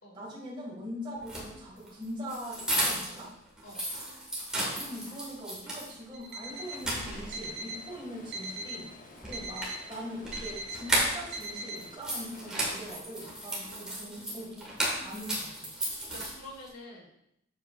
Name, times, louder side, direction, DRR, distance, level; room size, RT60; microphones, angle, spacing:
voice 1, 0.1-3.3 4.8-8.9 9.3-14.7 15.0-15.7, equal, 25° right, -4 dB, 2.0 m, -42 dB
sound 1, 1.2-3.3 3.6-5.9 6.3-6.4 6.7-7.6 9.2-11.5 11.8-16.7, right 1 dB, 5° right, 1.7 m, -34 dB
Alarm, 6.1-6.8 7.3-7.9 8.3-8.9 9.3-9.9 10.3-10.8 11.3-11.8, right 1 dB, 55° right, 0.8 m, -39 dB
Stream, 6.5-13.0, left 2 dB, 40° left, 1.0 m, -51 dB
voice 2, 13.7-14.4 16.1-17.1, left 1 dB, 85° left, -2 dB, 2.4 m, -48 dB
7.7 x 7.5 x 2.5 m, 0.76 s
head